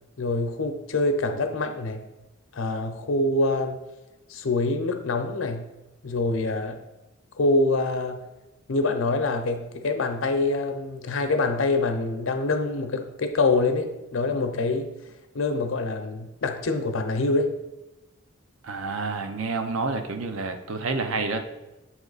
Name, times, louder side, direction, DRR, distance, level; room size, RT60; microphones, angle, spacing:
voice 1, 0.2-2.1 2.5-3.8 4.3-5.7 6.0-6.8 7.4-8.2 8.7-14.9 15.3-17.5, left 2 dB, 80° left, 6 dB, 0.6 m, -25 dB
voice 2, 18.6-21.4, right 3 dB, 90° right, 7 dB, 0.7 m, -29 dB
7.8 x 3.0 x 4.0 m, 1.0 s
head